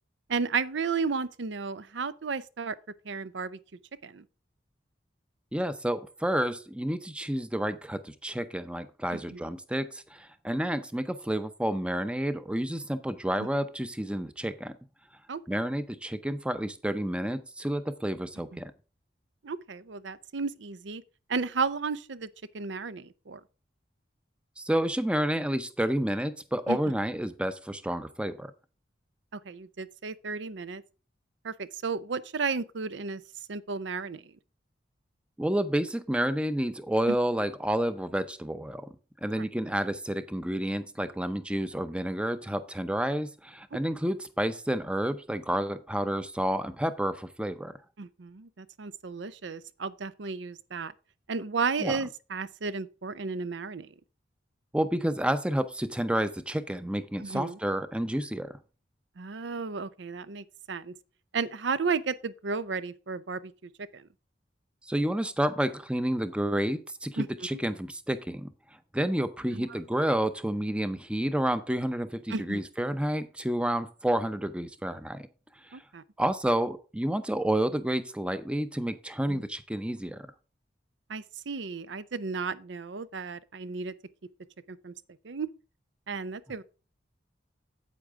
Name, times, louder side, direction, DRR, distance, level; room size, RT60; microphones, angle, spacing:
voice 1, 0.3-2.8 3.0-3.6 4.0-4.2 9.1-9.4 13.4-13.5 15.3-15.4 18.5-18.6 19.4-21.0 21.3-22.3 22.5-23.4 26.7-26.8 29.3-30.8 31.4-33.2 33.5-34.2 37.1-37.2 39.3-39.5 48.0-50.9 51.3-53.9 57.2-57.6 59.2-60.9 61.3-64.1 67.2-67.3 69.5-69.7 72.3-72.6 75.7-76.0 79.3-79.4 81.1-83.9 84.7-84.9 85.2-85.5 86.1-86.6, right 4 dB, 75° right, 0.6 m, -33 dB
voice 2, 5.5-14.7 15.5-18.7 24.6-28.5 35.4-38.9 39.2-47.7 51.8-52.0 54.7-58.6 64.8-68.5 68.9-75.3 75.7-75.8 76.2-80.2, right 1 dB, 5° right, 0.6 m, -30 dB
8.5 x 8.3 x 3.6 m
head